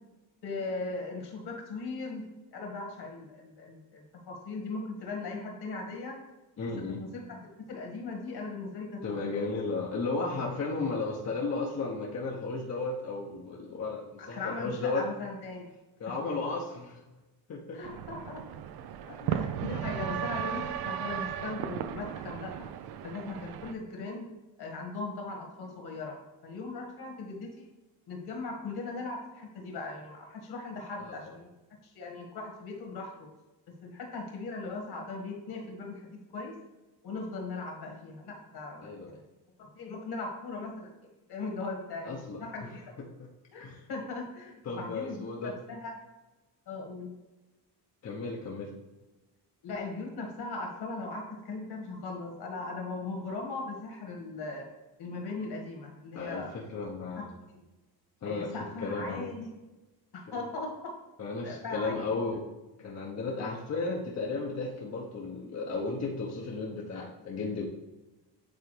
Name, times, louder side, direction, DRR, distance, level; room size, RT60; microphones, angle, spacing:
voice 1, 0.4-2.2 2.5-6.2 7.0-9.0 14.2-15.7 17.7-18.4 19.1-22.7 23.0-24.3 24.6-26.2 26.4-27.6 28.1-31.5 31.8-33.3 33.8-36.5 37.0-39.2 39.6-40.9 41.3-42.9 43.5-45.9 46.7-47.2 49.6-54.7 55.0-56.5 57.2-57.3 57.5-57.6 58.2-59.5 60.1-60.9 61.4-62.2 63.4-63.5, left 3 dB, 55° left, 1 dB, 1.9 m, -39 dB
voice 2, 6.6-7.0 9.0-15.1 16.0-17.0 17.5-17.8 19.0-19.3 31.0-31.2 38.8-39.2 42.0-42.4 43.2-43.3 43.6-43.8 44.6-45.5 48.0-48.7 56.1-57.3 58.2-58.5 58.8-59.2 60.3-60.4 61.2-62.5 62.8-67.7, left 3 dB, 35° left, -2 dB, 0.9 m, -34 dB
sound 1, 17.8-23.7, right 9 dB, 55° right, 0.5 m, -35 dB
8.4 x 3.5 x 3.3 m, 1.1 s
supercardioid pair, 85°, 45 cm